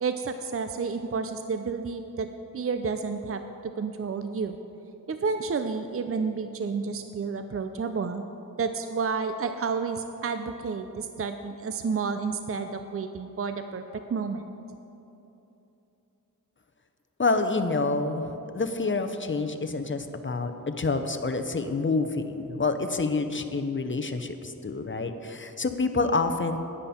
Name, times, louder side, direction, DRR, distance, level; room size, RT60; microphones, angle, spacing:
voice 1, 0.0-2.3 2.5-4.6 5.1-8.2 8.6-13.8 14.1-14.5, right 5 dB, 40° right, 8 dB, 0.6 m, -30 dB
voice 2, 17.2-26.6, left 3 dB, 35° left, 7 dB, 0.8 m, -28 dB
13.0 x 9.9 x 4.3 m, 3.0 s
cardioid pair, 55°, 34 cm